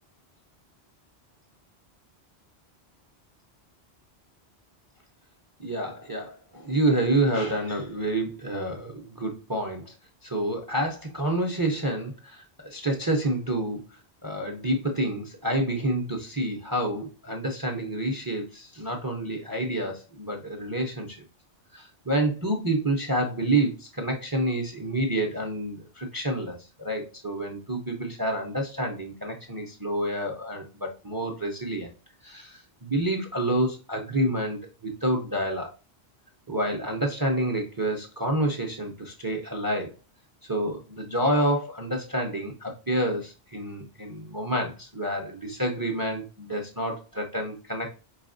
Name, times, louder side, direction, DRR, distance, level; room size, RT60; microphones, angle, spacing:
voice 1, 5.6-9.9 10.2-13.8 14.2-21.2 21.7-31.9 32.2-35.7 36.5-39.9 40.5-47.9, right 1 dB, 25° right, 2 dB, 0.5 m, -28 dB
4.8 x 3.3 x 2.5 m, 0.31 s
omnidirectional pair, 1.1 m